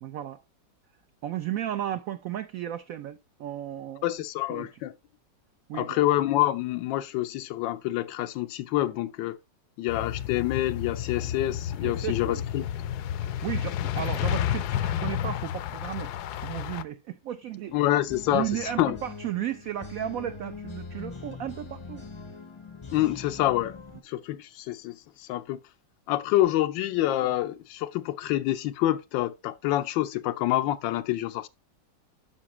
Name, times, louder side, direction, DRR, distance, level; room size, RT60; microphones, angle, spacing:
voice 1, 0.0-0.4 1.2-4.1 4.5-4.7 5.7-6.0 11.8-12.4 13.4-16.1 16.4-17.8 18.3-22.0 27.2-27.3, right 11 dB, 80° right, 0.7 m, -34 dB
voice 2, 4.0-4.9 5.7-9.4 9.8-12.7 17.7-19.0 22.9-23.8 24.0-25.6 26.1-31.5, left 14 dB, 85° left, 1.3 m, -27 dB
sound 1, 9.9-16.8, left 10 dB, 70° left, 1.0 m, -31 dB
sound 2, 17.7-24.0, left 4 dB, 40° left, 0.4 m, -42 dB
9.8 x 5.9 x 3.1 m
omnidirectional pair, 2.0 m